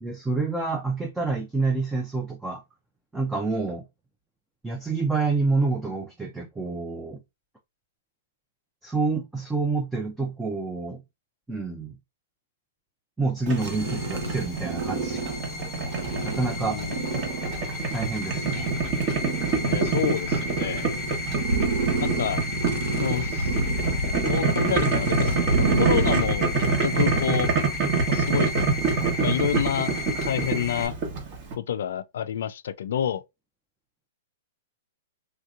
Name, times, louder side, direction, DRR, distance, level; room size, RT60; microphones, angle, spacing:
voice 1, 0.0-2.6 3.1-3.8 4.6-7.2 8.8-11.0 11.5-12.0 13.2-15.3 16.2-16.8 17.9-18.7, right 3 dB, 5° right, 0.5 m, -28 dB
sound 1, 13.4-26.7, right 2 dB, 65° right, 0.8 m, -29 dB
Boiling, 13.5-31.5, right 4 dB, 40° right, 1.2 m, -27 dB
sound 2, 13.6-30.9, left 3 dB, 15° left, 1.1 m, -35 dB
voice 2, 16.6-16.9 19.6-20.9 22.0-22.4 23.0-23.6 24.2-27.5 28.1-28.5 29.2-29.9 30.2-30.9 31.6-33.2, left 9 dB, 75° left, 0.3 m, -28 dB
3.2 x 2.8 x 2.4 m
hypercardioid pair, 145°, 0 cm